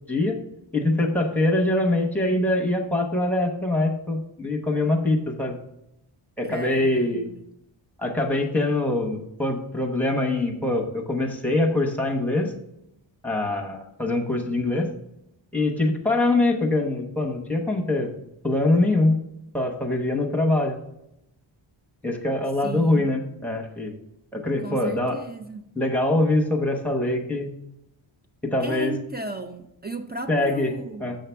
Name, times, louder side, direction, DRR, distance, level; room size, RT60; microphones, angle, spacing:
voice 1, 0.7-5.6 6.4-7.3 8.0-12.5 13.2-14.9 15.5-18.1 18.4-19.2 19.5-20.8 22.0-24.0 24.3-25.2 25.7-27.5 28.4-28.9 30.3-30.7 31.0-31.2, left 2 dB, 5° left, 0 dB, 0.9 m, -23 dB
voice 2, 6.4-7.5 22.6-23.1 24.6-25.7 28.6-31.1, right 2 dB, 20° right, 5 dB, 0.4 m, -35 dB
7.6 x 5.7 x 3.4 m, 0.83 s
wide cardioid pair, 145°, 48 cm